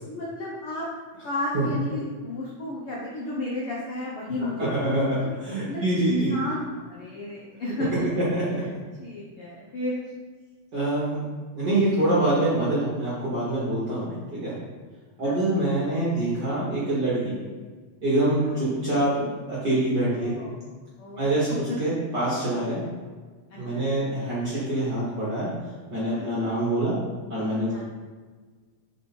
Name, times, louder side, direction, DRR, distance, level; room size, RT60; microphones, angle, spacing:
voice 1, 0.1-0.9 1.2-5.3 5.7-8.1 8.6-8.7 9.0-10.0 14.3-14.4 15.2-15.4 18.4-18.6 20.0-20.6 21.0-21.8 23.5-23.9 26.1-26.5 27.7-27.8, left 1 dB, 90° left, -5 dB, 1.2 m, -33 dB
voice 2, 4.8-6.4 8.3-8.6 10.7-11.2 11.6-14.5 15.2-17.3 18.0-20.4 21.2-22.8 23.6-25.5 25.9-27.0 27.3-27.8, right 1 dB, 45° right, -8 dB, 1.4 m, -25 dB
6.7 x 4.9 x 4.3 m, 1.4 s
omnidirectional pair, 3.9 m